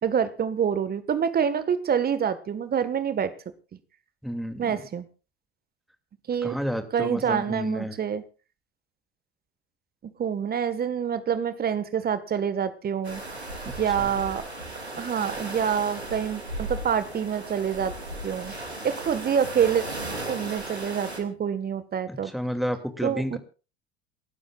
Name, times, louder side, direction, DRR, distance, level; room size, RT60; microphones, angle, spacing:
voice 1, 0.0-3.3 4.6-5.1 6.3-6.6 6.9-8.2 10.0-13.2 13.8-14.4 15.0-17.9 18.2-18.5 18.8-19.8 20.3-22.3 23.0-23.4, right 8 dB, 30° right, 12 dB, 1.7 m, -26 dB
voice 2, 4.2-4.9 6.4-8.0 13.9-14.1 22.1-23.4, equal, ahead, 6 dB, 2.8 m, -31 dB
sound 1, 13.0-21.2, right 1 dB, 90° right, 2.7 m, -36 dB
28.5 x 12.5 x 2.5 m, 0.35 s
figure-of-eight pair, 70°, 32 cm